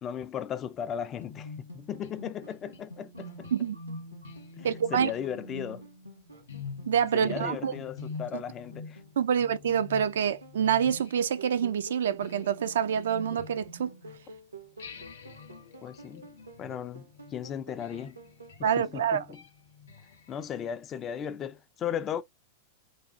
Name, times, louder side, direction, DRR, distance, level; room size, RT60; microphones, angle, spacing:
voice 1, 0.0-3.5 4.6-5.9 7.1-9.0 15.8-16.3 16.6-18.2 18.6-19.4 20.3-22.2, left 9 dB, 30° left, 0.3 m, -36 dB
sound 1, 1.0-18.5, right 1 dB, 80° right, 0.7 m, -51 dB
sound 2, 1.3-14.3 14.8-20.7, left 3 dB, 65° left, 0.7 m, -46 dB
voice 2, 4.6-5.1 6.9-7.7 8.3-8.4 9.2-13.9 18.6-19.2, right 8 dB, 65° right, 0.3 m, -27 dB
3.3 x 2.0 x 2.7 m
figure-of-eight pair, 90°, 0 cm